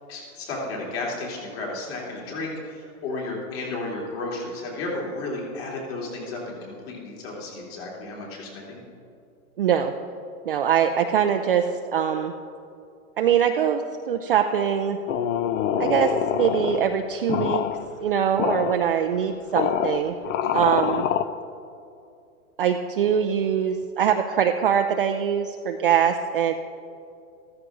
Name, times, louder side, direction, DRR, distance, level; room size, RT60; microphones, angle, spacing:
voice 1, 0.1-8.8 20.4-20.7, left 2 dB, 40° left, -3 dB, 3.5 m, -33 dB
voice 2, 9.6-9.9 10.5-11.7 11.9-12.3 13.2-13.8 14.1-15.0 15.8-17.6 18.0-20.1 20.5-21.1 22.6-26.5, right 8 dB, 40° right, 5 dB, 0.4 m, -22 dB
sound 1, 15.1-16.9 17.3-17.8 18.4-18.8 19.5-21.2, left 9 dB, 60° left, 0.7 m, -25 dB
14.0 x 14.0 x 3.9 m, 2.5 s
hypercardioid pair, 160°, 44 cm